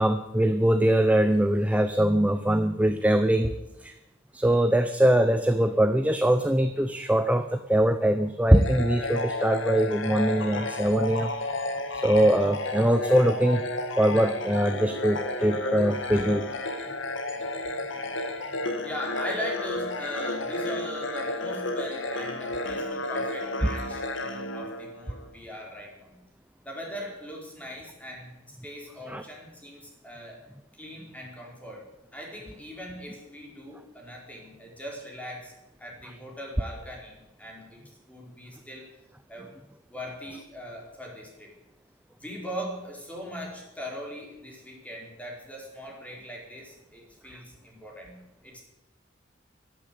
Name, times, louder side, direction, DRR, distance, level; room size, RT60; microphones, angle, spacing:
voice 1, 0.0-3.5 3.8-3.9 4.3-11.3 11.9-13.6 14.0-16.5 29.1-29.2, right 1 dB, 5° right, 8 dB, 0.7 m, -22 dB
sound 1, 8.5-25.3, left 2 dB, 75° left, 1.9 m, -32 dB
voice 2, 18.8-26.2 26.6-30.4 30.7-35.5 35.8-38.9 39.3-39.5 39.9-41.5 42.2-48.6, equal, 10° left, -2 dB, 4.6 m, -40 dB
12.5 x 12.0 x 8.3 m, 0.91 s
head